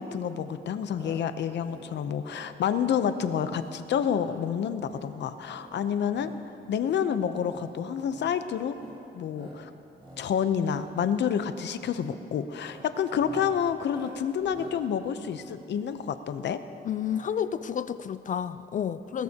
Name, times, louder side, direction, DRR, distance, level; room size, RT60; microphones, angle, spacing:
voice 1, 0.0-6.3 6.7-8.8 9.1-9.7 10.2-16.6 19.1-19.2, left 8 dB, 75° left, 10 dB, 0.7 m, -29 dB
sound 1, 0.9-1.2 1.5-1.9 2.2-2.5 2.9-3.1 3.5-3.8 4.1-4.4 4.7-5.1 5.5-6.4 6.7-7.0 7.4-7.7 8.0-8.3 8.7-9.0 9.3-9.6 9.9-10.3 10.5-10.9 11.2-11.5 11.9-12.2 12.5-16.2 17.0-17.2 17.5-17.6 17.8-17.9, right 1 dB, 30° right, 4.0 m, -49 dB
voice 2, 16.8-19.2, left 8 dB, 45° left, 13 dB, 0.4 m, -30 dB
21.0 x 20.0 x 2.9 m, 2.7 s
wide cardioid pair, 155°, 18 cm